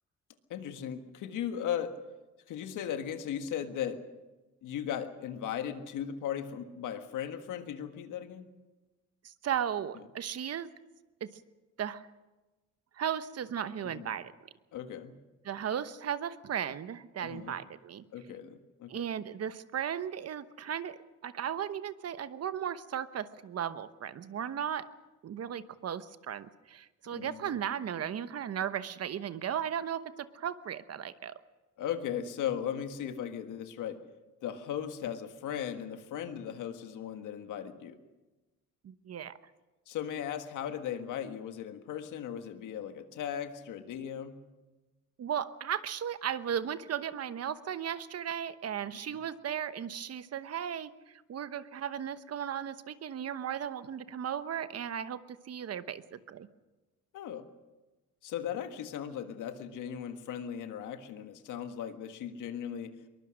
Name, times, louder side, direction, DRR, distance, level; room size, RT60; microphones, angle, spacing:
voice 1, 0.5-2.0 2.5-4.0 4.6-8.5 13.8-14.1 14.7-15.2 17.2-17.6 18.1-19.0 27.1-27.6 31.8-34.0 34.4-38.0 39.9-44.4 49.1-49.2 57.1-57.5 58.2-63.1, left 9 dB, 85° left, 8 dB, 1.6 m, -37 dB
voice 2, 9.2-10.7 11.2-11.3 11.8-12.1 13.0-14.3 15.4-18.0 18.9-24.9 25.2-31.4 38.8-39.4 45.2-56.5, right 9 dB, 55° right, 13 dB, 1.0 m, -36 dB
22.5 x 20.0 x 6.4 m, 1.2 s
cardioid pair, 90°, 30 cm